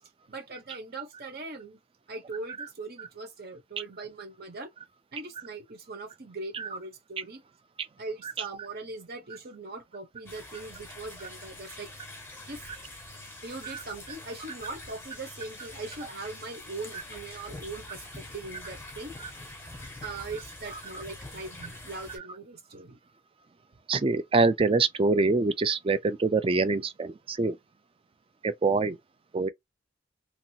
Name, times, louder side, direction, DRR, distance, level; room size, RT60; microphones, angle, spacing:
voice 1, 0.3-1.8 2.1-4.7 5.1-7.4 8.0-11.9 12.5-12.6 13.4-18.0 18.3-19.1 20.0-23.0, right 3 dB, 55° right, 1.1 m, -40 dB
sound 1, 10.3-22.2, left 2 dB, 15° left, 0.9 m, -45 dB
voice 2, 23.9-27.6 28.4-29.0 29.3-29.5, right 3 dB, 30° right, 0.4 m, -25 dB
2.9 x 2.6 x 2.8 m
head